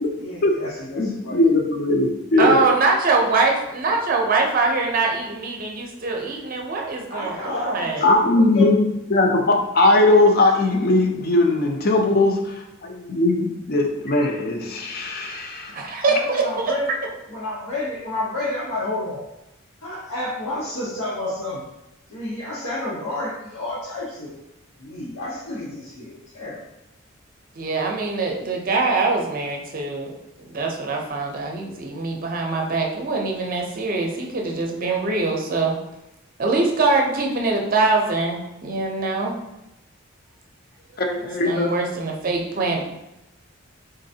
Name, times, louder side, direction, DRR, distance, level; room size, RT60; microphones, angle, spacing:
voice 1, 0.2-1.4 7.1-8.7 16.0-17.0 17.3-19.2 19.8-21.6 22.1-24.4 24.8-26.6, left 2 dB, 85° left, -7 dB, 0.9 m, -30 dB
voice 2, 1.0-2.5 8.0-9.4 9.7-12.5 12.8-15.8 41.0-41.7, left 2 dB, 45° left, 3 dB, 0.5 m, -19 dB
voice 3, 2.4-8.0 15.7-16.7 27.6-35.7 36.4-39.3 41.2-42.9, right 3 dB, 40° right, 1 dB, 0.6 m, -23 dB
3.8 x 3.2 x 2.7 m, 0.90 s
head